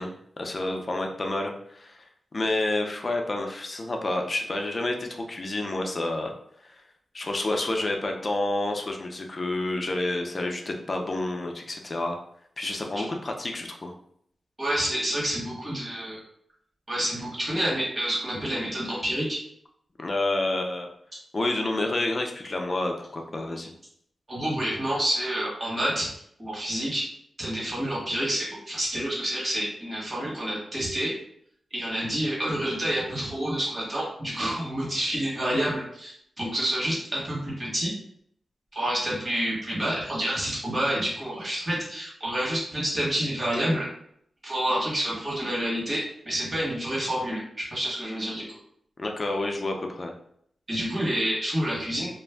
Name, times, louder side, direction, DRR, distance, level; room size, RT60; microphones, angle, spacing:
voice 1, 0.0-2.1 2.3-6.3 6.6-6.8 7.1-12.2 12.6-13.9 20.0-20.9 21.3-23.7 49.0-50.1, left 2 dB, 40° left, 3 dB, 0.5 m, -29 dB
voice 2, 14.6-16.2 16.9-19.4 24.3-26.1 26.4-27.0 27.4-31.1 31.7-37.9 38.7-43.9 44.4-48.4 50.7-52.1, right 1 dB, 25° right, -6 dB, 1.3 m, -28 dB
2.4 x 2.0 x 3.4 m, 0.68 s
wide cardioid pair, 95°, 0 cm